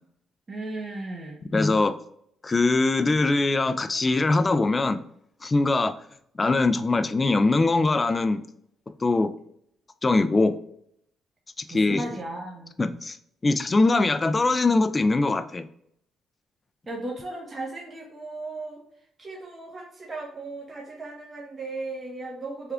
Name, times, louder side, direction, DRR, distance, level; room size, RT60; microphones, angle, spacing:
voice 1, 0.5-1.4 11.7-12.7 16.9-18.8 19.2-22.7, right 2 dB, 30° right, -1 dB, 0.8 m, -36 dB
voice 2, 1.5-1.9 2.4-5.0 5.4-5.9 6.4-8.4 9.0-9.3 10.0-10.5 11.6-12.0 12.8-13.2 13.4-15.7, left 3 dB, 25° left, 10 dB, 0.3 m, -22 dB
3.4 x 2.3 x 3.5 m, 0.71 s
cardioid pair, 90°, 0 cm